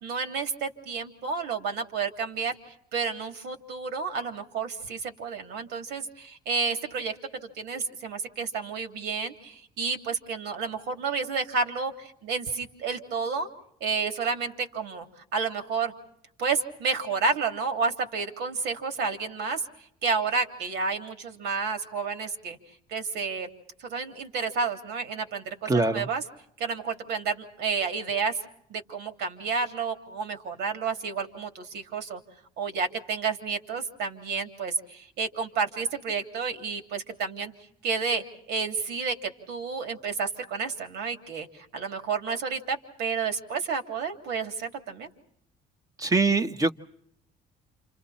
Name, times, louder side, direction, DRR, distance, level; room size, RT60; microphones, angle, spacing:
voice 1, 0.0-2.6 2.9-7.1 7.6-13.5 13.8-15.1 15.3-15.9 16.4-19.6 20.0-22.6 22.9-23.5 23.8-26.2 26.6-28.4 28.7-32.2 32.6-37.5 37.8-45.1, right 5 dB, 80° right, 5 dB, 3.2 m, -30 dB
voice 2, 25.6-26.1 46.0-46.7, right 3 dB, 20° right, 8 dB, 1.3 m, -23 dB
29.5 x 28.5 x 4.3 m, 0.71 s
cardioid pair, 110°, 17 cm